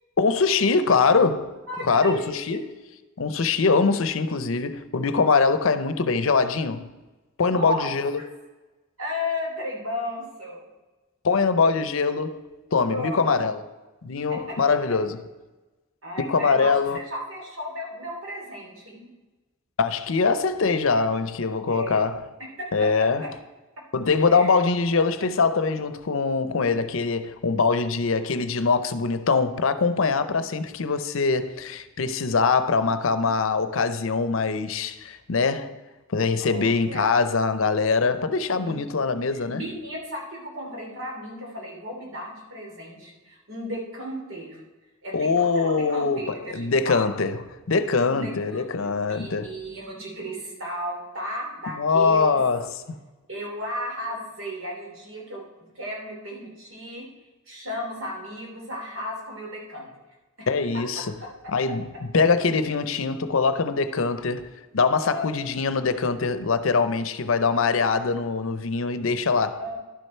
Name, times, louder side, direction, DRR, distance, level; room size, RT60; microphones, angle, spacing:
voice 1, 0.2-1.5 1.9-2.6 3.2-6.9 7.4-8.2 11.2-12.4 12.7-13.6 14.0-15.2 16.2-17.0 19.8-22.2 22.7-23.3 23.9-35.7 36.1-39.6 45.1-47.4 47.7-49.5 51.7-53.0 60.5-61.1 61.5-61.9 62.1-64.5 64.7-69.6, left 4 dB, 70° left, 0.6 m, -23 dB
voice 2, 1.7-2.4 7.5-7.9 8.2-8.3 9.0-10.6 12.9-13.2 14.3-14.6 16.0-19.1 21.7-22.0 22.6-23.3 24.3-24.6 30.2-30.4 36.4-37.2 38.6-38.8 39.3-44.6 45.0-47.2 48.1-52.4 53.3-57.1 57.5-59.9 60.4-60.5 60.7-60.8 65.0-65.4 69.6-69.8, equal, 65° right, 2.9 m, -34 dB
11.5 x 6.6 x 4.4 m
head